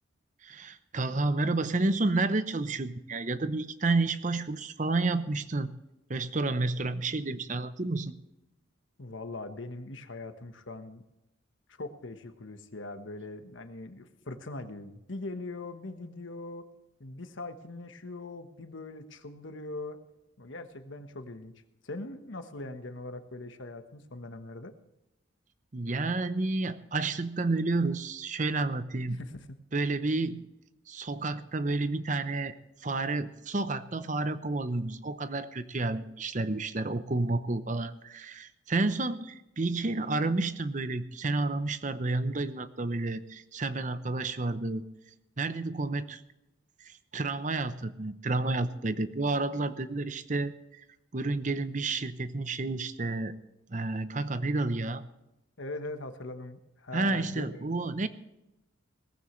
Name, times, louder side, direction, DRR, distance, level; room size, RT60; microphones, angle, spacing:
voice 1, 0.4-5.7 6.1-8.1 25.7-29.2 29.7-30.4 30.9-32.5 32.8-44.8 45.4-46.2 46.8-50.8 51.1-53.4 53.7-55.0 56.9-58.1, right 2 dB, 35° right, 12 dB, 0.7 m, -30 dB
voice 2, 9.0-11.0 11.7-16.6 17.0-20.0 20.4-21.5 21.8-24.7 29.1-29.6 55.6-57.6, left 2 dB, 70° left, 8 dB, 1.3 m, -41 dB
18.0 x 15.0 x 3.2 m, 0.94 s
head